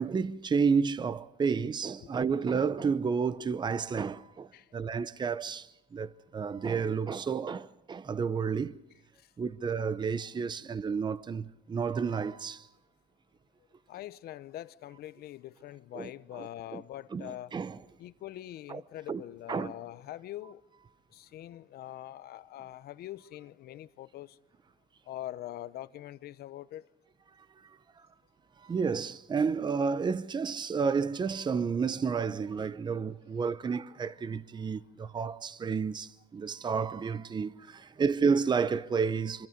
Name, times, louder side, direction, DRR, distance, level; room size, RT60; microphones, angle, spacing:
voice 1, 0.0-8.8 9.4-12.7 15.9-16.8 17.1-17.8 18.7-18.8 19.1-19.2 19.5-19.7 28.6-39.5, right 5 dB, 25° right, 0.7 m, -31 dB
voice 2, 13.9-17.5 18.0-20.6 21.1-24.4 25.1-26.9, left 13 dB, 65° left, 0.8 m, -43 dB
25.5 x 24.0 x 5.1 m
cardioid pair, 110°, 17 cm